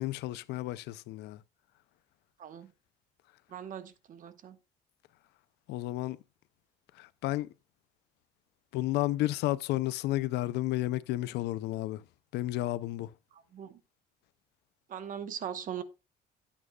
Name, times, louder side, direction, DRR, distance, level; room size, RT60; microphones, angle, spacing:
voice 1, 0.0-1.4 5.7-6.2 7.2-7.5 8.7-12.0 12.3-13.1, left 16 dB, 80° left, 0.5 m, -31 dB
voice 2, 2.4-2.7 3.5-4.6 13.3-13.8 14.9-15.8, right 9 dB, 50° right, 1.1 m, -40 dB
10.5 x 8.7 x 2.3 m
cardioid pair, 110°, 17 cm